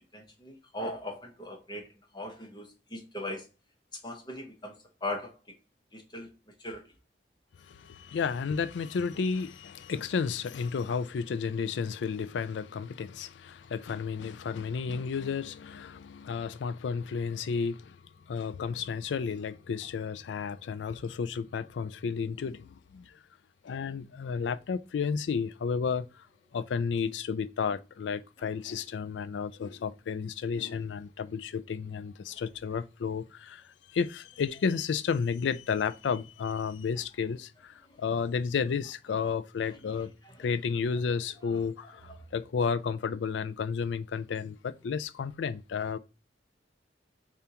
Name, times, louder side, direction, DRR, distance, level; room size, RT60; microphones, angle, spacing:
voice 1, 0.1-1.9 2.1-3.5 4.0-5.3 5.9-6.3 6.6-6.8 28.4-28.5 32.3-32.4 41.5-41.9, left 1 dB, 25° left, 0.9 m, -39 dB
voice 2, 7.7-18.0 18.3-23.0 23.6-26.1 26.5-33.6 33.9-40.1 40.4-46.0, left 6 dB, 85° left, 0.4 m, -32 dB
6.8 x 2.4 x 2.9 m
head